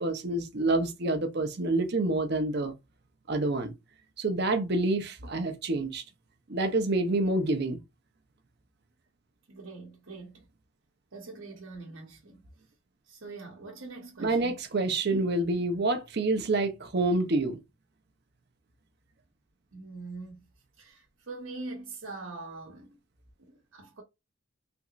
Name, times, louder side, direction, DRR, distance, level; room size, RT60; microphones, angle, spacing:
voice 1, 0.0-2.7 3.3-3.7 4.2-6.0 6.5-7.8 14.2-17.6, right 2 dB, 55° right, 0.7 m, -27 dB
voice 2, 9.5-10.5 11.1-12.5 13.0-14.6 19.7-20.5 20.8-23.0 23.4-24.0, right 3 dB, 80° right, 1.0 m, -43 dB
3.4 x 2.9 x 2.5 m
head